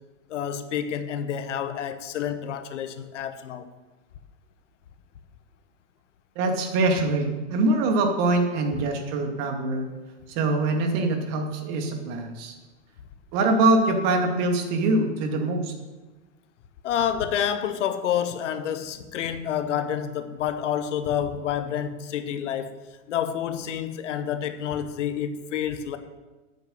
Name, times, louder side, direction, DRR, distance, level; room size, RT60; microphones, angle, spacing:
voice 1, 0.3-3.7 16.8-22.8 23.1-26.0, left 9 dB, 70° left, 1.2 m, -28 dB
voice 2, 6.4-9.9 10.3-12.5 13.3-15.7, right 2 dB, 45° right, 2.2 m, -23 dB
8.9 x 8.0 x 7.8 m
hypercardioid pair, 110°, 38 cm